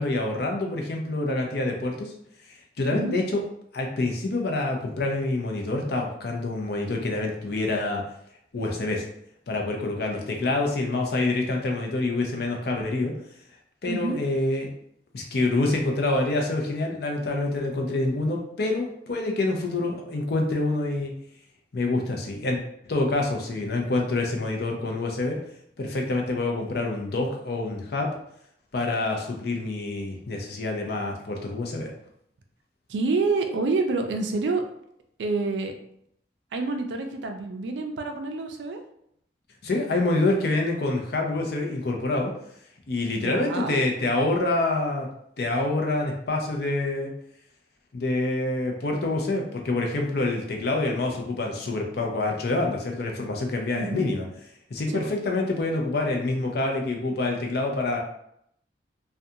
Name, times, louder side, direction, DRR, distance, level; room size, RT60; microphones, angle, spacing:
voice 1, 0.0-2.1 2.5-3.4 3.7-8.0 8.5-9.0 9.5-13.1 13.8-14.7 15.1-21.1 21.7-25.4 25.8-28.1 28.7-31.9 39.6-42.3 42.9-45.1 45.4-47.1 47.9-54.3 54.7-58.0, left 2 dB, 65° left, 1 dB, 0.5 m, -26 dB
voice 2, 13.9-14.2 32.9-34.6 35.2-35.7 36.5-38.8 43.2-43.8 53.7-54.1 54.9-55.1, right 3 dB, 80° right, 5 dB, 0.4 m, -27 dB
2.4 x 2.2 x 2.7 m, 0.73 s
head